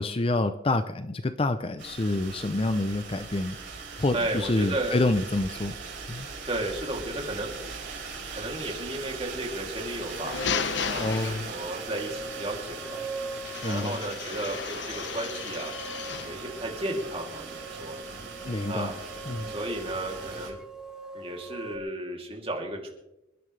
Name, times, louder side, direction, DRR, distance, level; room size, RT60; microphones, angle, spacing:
voice 1, 0.0-3.6 4.0-5.8 6.1-6.3 11.0-11.5 13.6-14.0 18.4-18.9 19.3-19.5, left 2 dB, 30° left, 10 dB, 0.5 m, -27 dB
sound 1, 1.8-20.5, right 4 dB, 75° right, 3.9 m, -40 dB
voice 2, 4.1-5.0 6.5-7.5 8.3-10.4 10.9-13.0 13.6-15.7 16.0-17.9 18.7-18.9 19.5-20.6 21.1-22.9, right 1 dB, 30° right, 0 dB, 2.8 m, -34 dB
sound 2, 10.0-11.9 13.4-16.4, left 6 dB, 65° left, 0.7 m, -34 dB
sound 3, 11.5-21.8, right 3 dB, 5° right, 1.1 m, -42 dB
27.5 x 11.0 x 3.3 m, 0.90 s
head